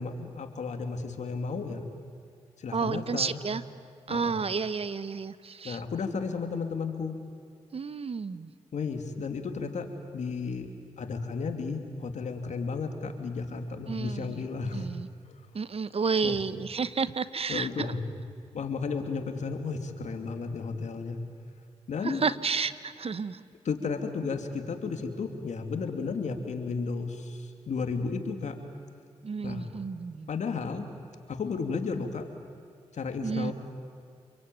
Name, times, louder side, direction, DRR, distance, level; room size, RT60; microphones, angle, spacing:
voice 1, 0.0-1.9 2.6-3.4 4.1-4.4 5.6-7.1 8.7-9.9 10.1-10.7 11.0-14.9 15.3-15.4 16.2-16.4 17.5-18.0 18.5-21.2 21.9-22.2 23.6-28.5 29.4-29.7 30.3-30.9 31.3-32.2 32.9-33.5, left 4 dB, 70° left, 5 dB, 2.8 m, -33 dB
voice 2, 2.7-3.6 4.1-5.8 7.7-8.5 13.9-14.4 14.7-15.1 15.5-17.9 22.0-23.4 29.2-30.3 33.2-33.5, right 5 dB, 55° right, 14 dB, 1.1 m, -31 dB
28.0 x 22.5 x 9.3 m, 2.3 s
supercardioid pair, 50°, 12 cm